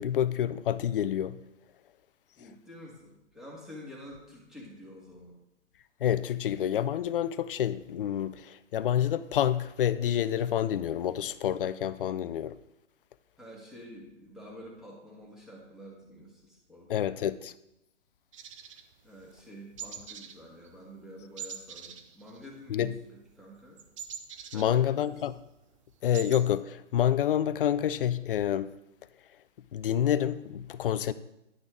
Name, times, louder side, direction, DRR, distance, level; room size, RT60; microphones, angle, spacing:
voice 1, 0.0-1.4 6.0-12.6 16.9-17.5 22.7-22.9 24.5-25.3 26.0-28.7 29.7-31.1, left 10 dB, 45° left, 0.5 m, -28 dB
voice 2, 2.4-5.3 13.4-17.2 19.0-22.9 23.4-23.8 24.5-25.1, equal, ahead, 1.7 m, -48 dB
sound 1, 18.3-19.5 19.8-20.4 20.6-20.9 21.4-22.9 23.2-25.3 25.6-25.7 25.9-26.4, right 7 dB, 25° right, 0.5 m, -43 dB
11.0 x 6.0 x 3.7 m
hypercardioid pair, 135°, 37 cm